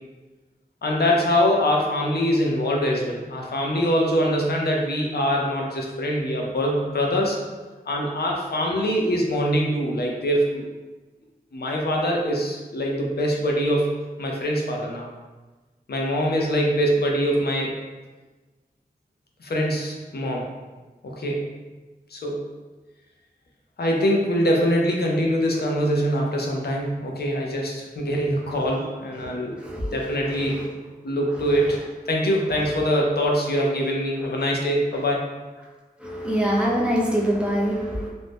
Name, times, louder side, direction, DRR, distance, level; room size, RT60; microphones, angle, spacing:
voice 1, 0.8-7.4 7.9-10.6 11.5-13.9 14.2-15.1 15.9-17.7 19.4-20.5 21.0-21.5 22.1-22.4 23.8-29.6 29.9-30.6 31.0-35.3, equal, 80° left, -1 dB, 0.5 m, -23 dB
voice 2, 29.6-30.7 31.4-31.9 32.6-32.9 34.1-34.3 36.0-38.1, equal, 5° right, -4 dB, 0.6 m, -26 dB
2.6 x 2.0 x 3.3 m, 1.3 s
wide cardioid pair, 60°, 16 cm